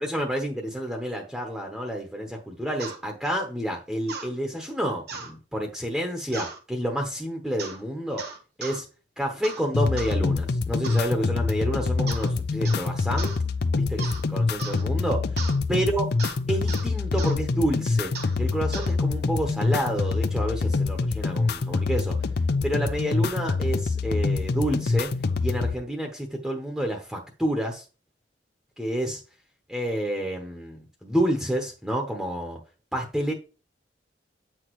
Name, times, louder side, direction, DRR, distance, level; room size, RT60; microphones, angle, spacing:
voice 1, 0.0-8.2 8.6-8.9 9.2-13.3 13.7-15.4 15.7-16.1 16.5-18.1 18.4-22.1 22.6-25.1 25.4-27.8 28.8-29.2 29.7-32.6 32.9-33.3, equal, ahead, 1 dB, 0.9 m, -29 dB
sound 1, 2.8-3.0 4.1-4.3 5.1-5.3 6.3-6.6 7.6-7.8 8.2-8.8 9.4-9.6 10.0-10.2 10.8-11.1 12.1-12.3 12.6-12.9 13.2-13.4 14.0-14.2 14.6-14.8 15.4-15.6 16.2-16.4 16.7-16.9 17.2-17.4 18.1-18.4 18.7-18.9, right 4 dB, 60° right, 1.4 m, -37 dB
sound 2, 9.7-25.7, left 3 dB, 60° left, 0.5 m, -25 dB
8.6 x 6.1 x 3.1 m, 0.33 s
head